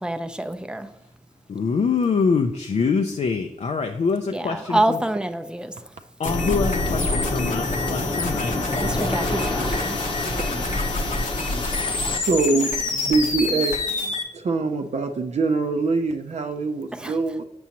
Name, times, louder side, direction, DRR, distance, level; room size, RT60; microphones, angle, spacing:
voice 1, 0.0-0.9 4.3-5.7 8.8-10.0 17.0-17.1, right 1 dB, 5° right, 7 dB, 0.5 m, -26 dB
voice 2, 1.5-5.0 6.2-8.5, left 5 dB, 55° left, 5 dB, 0.5 m, -24 dB
sound 1, 6.2-14.2, left 4 dB, 70° left, 0.9 m, -29 dB
Waves surf, 6.2-12.2, left 1 dB, 40° left, 0.8 m, -26 dB
voice 3, 12.1-13.7 14.3-17.5, right 3 dB, 55° right, 5 dB, 0.5 m, -23 dB
6.9 x 6.1 x 2.9 m, 0.90 s
cardioid pair, 60°, 14 cm